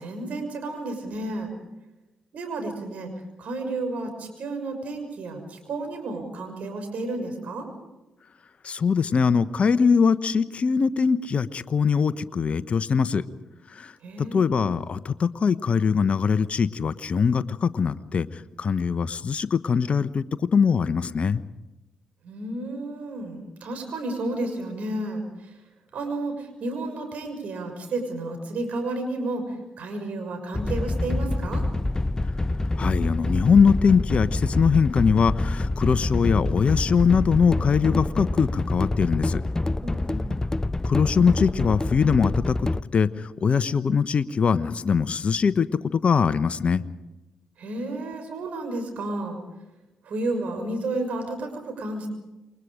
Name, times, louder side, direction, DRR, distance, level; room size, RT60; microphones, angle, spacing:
voice 1, 0.0-1.5 2.3-3.1 3.4-7.7 14.0-14.8 22.2-25.2 25.9-31.6 39.8-40.2 47.6-49.4 50.0-52.1, right 2 dB, 60° right, 5 dB, 6.3 m, -32 dB
voice 2, 8.6-13.2 13.7-13.9 14.3-20.2 20.5-21.4 32.8-39.4 40.8-42.6 42.9-45.7 45.9-46.8, left 6 dB, 50° left, 15 dB, 1.0 m, -22 dB
sound 1, 30.5-42.8, left 2 dB, 20° left, 0.7 m, -26 dB
28.5 x 23.0 x 5.1 m, 1.0 s
hypercardioid pair, 40°, 3 cm